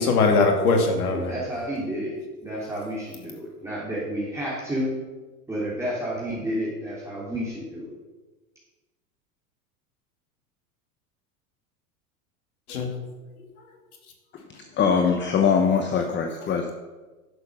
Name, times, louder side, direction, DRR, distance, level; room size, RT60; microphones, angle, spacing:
voice 1, 0.0-1.3 12.7-12.9, left 3 dB, 70° left, 4 dB, 2.5 m, -21 dB
voice 2, 1.1-2.1 2.4-4.9 5.5-7.9, equal, 5° right, -8 dB, 3.2 m, -30 dB
voice 3, 14.8-16.7, left 6 dB, 25° left, 5 dB, 1.0 m, -22 dB
11.0 x 6.9 x 6.3 m, 1.2 s
hypercardioid pair, 100°, 45 cm